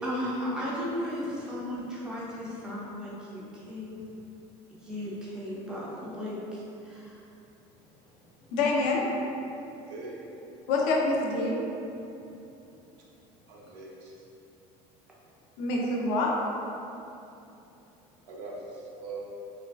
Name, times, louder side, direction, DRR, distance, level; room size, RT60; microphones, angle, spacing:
voice 1, 0.0-4.1 4.8-7.2, left 1 dB, 5° right, -7 dB, 0.4 m, -35 dB
voice 2, 3.6-4.0 5.0-5.1 9.9-10.2 13.5-14.2 18.3-19.2, right 3 dB, 70° right, -3 dB, 0.6 m, -42 dB
voice 3, 8.5-9.0 10.7-11.6 15.6-16.3, left 2 dB, 70° left, -2 dB, 0.5 m, -26 dB
3.1 x 2.4 x 2.3 m, 2.8 s
cardioid pair, 175°, 14 cm